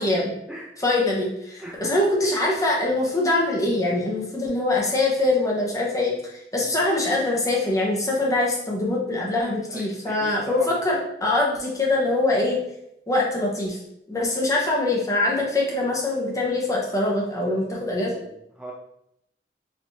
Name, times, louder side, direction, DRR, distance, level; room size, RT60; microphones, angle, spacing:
voice 1, 0.0-0.3 0.8-12.6 13.1-13.8 14.1-18.2, left 2 dB, 20° left, -3 dB, 0.8 m, -23 dB
voice 2, 1.6-1.9 2.3-2.5 6.6-6.7 9.7-10.9 17.8-18.7, equal, 5° right, -3 dB, 0.3 m, -39 dB
4.4 x 2.5 x 2.8 m, 0.79 s
head